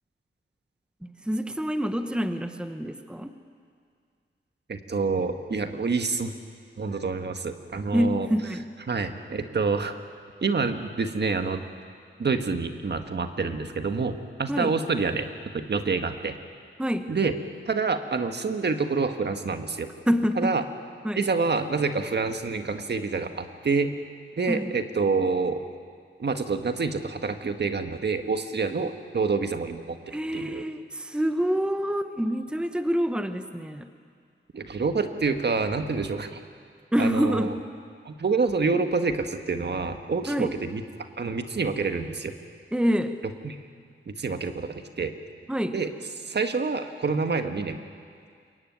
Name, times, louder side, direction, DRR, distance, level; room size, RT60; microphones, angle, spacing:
voice 1, 1.0-3.3 7.9-8.7 14.5-14.7 16.8-17.1 20.1-20.6 21.0-21.2 24.5-24.7 30.1-33.9 36.9-37.6 40.3-40.5 42.7-43.2 45.5-45.8, equal, 5° right, 8 dB, 1.1 m, -26 dB
voice 2, 4.7-6.3 6.8-8.3 8.9-9.9 10.4-11.6 12.2-15.3 15.5-16.4 17.1-17.3 17.7-19.9 20.4-20.6 21.2-23.9 24.4-25.6 26.2-30.0 30.3-30.6 34.5-36.3 37.0-37.5 38.0-40.8 41.2-42.3 43.4-43.6 44.1-45.1 45.7-45.9 46.2-47.8, right 4 dB, 55° right, 7 dB, 1.6 m, -27 dB
27.0 x 22.5 x 9.4 m, 2.1 s
wide cardioid pair, 140°, 21 cm